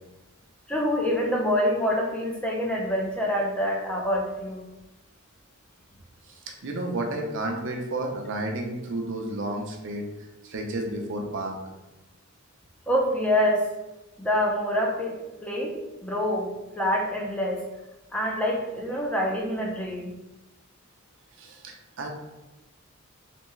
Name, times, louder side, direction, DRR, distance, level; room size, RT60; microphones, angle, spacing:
voice 1, 0.7-4.6 12.9-13.7 14.2-15.7 16.0-16.5 16.8-17.6 18.1-20.1, equal, 5° left, -2 dB, 0.6 m, -26 dB
voice 2, 6.2-11.6 21.3-22.1, right 2 dB, 60° right, 2 dB, 0.7 m, -32 dB
3.4 x 3.3 x 3.1 m, 1.0 s
head